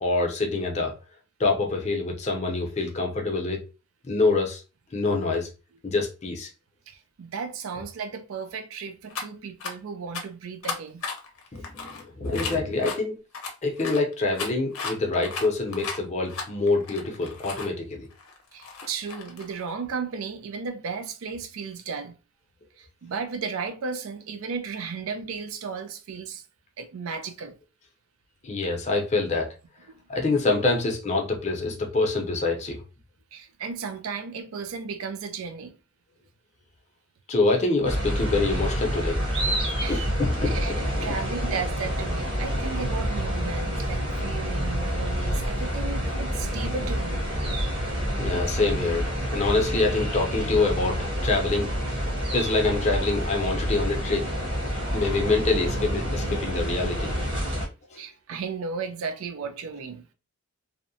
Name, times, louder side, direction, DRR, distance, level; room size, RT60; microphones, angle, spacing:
voice 1, 0.0-0.9 1.4-3.6 4.0-4.6 4.9-5.5 5.8-6.5 11.5-13.2 13.6-18.1 28.4-29.5 30.1-32.8 37.3-39.2 39.8-41.1 48.2-52.1 52.3-54.3 54.9-57.1 57.9-58.0, left 3 dB, 30° left, 0.5 m, -26 dB
voice 2, 6.9-11.0 18.5-22.2 22.8-26.4 26.8-27.6 29.9-30.0 33.3-35.8 39.8-40.1 40.4-47.2 58.0-60.1, right 5 dB, 75° right, 0.4 m, -34 dB
sound 1, 9.1-9.2 9.6-9.7 10.1-10.2 10.6-13.0 13.3-17.7 18.1-19.7, left 4 dB, 85° left, 0.6 m, -35 dB
sound 2, 37.8-57.7, equal, 25° right, 0.8 m, -28 dB
2.7 x 2.0 x 2.6 m
head